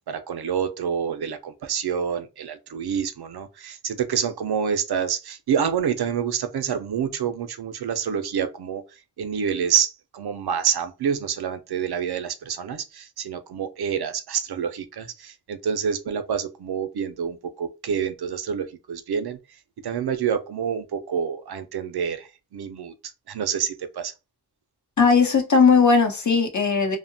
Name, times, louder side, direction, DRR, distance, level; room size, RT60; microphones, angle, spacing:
voice 1, 0.1-8.8 9.2-19.4 19.8-22.9 23.3-24.1, right 7 dB, 70° right, 0.5 m, -27 dB
voice 2, 25.0-27.0, left 5 dB, 45° left, 0.8 m, -18 dB
2.7 x 2.1 x 2.6 m
wide cardioid pair, 55°, 40 cm